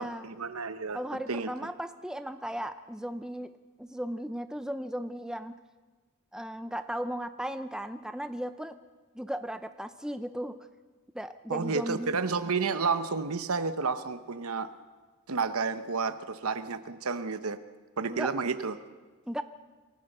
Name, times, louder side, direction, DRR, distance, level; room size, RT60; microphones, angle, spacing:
voice 1, 0.0-1.0 1.3-1.5 11.5-14.7 15.3-17.6 18.0-18.7, right 4 dB, 85° right, 11 dB, 0.9 m, -31 dB
voice 2, 0.9-3.5 3.8-5.6 6.3-8.8 9.1-10.6 11.1-12.1 18.1-18.3 19.3-19.4, equal, 5° right, 9 dB, 0.6 m, -36 dB
28.0 x 15.5 x 6.7 m, 1.3 s
head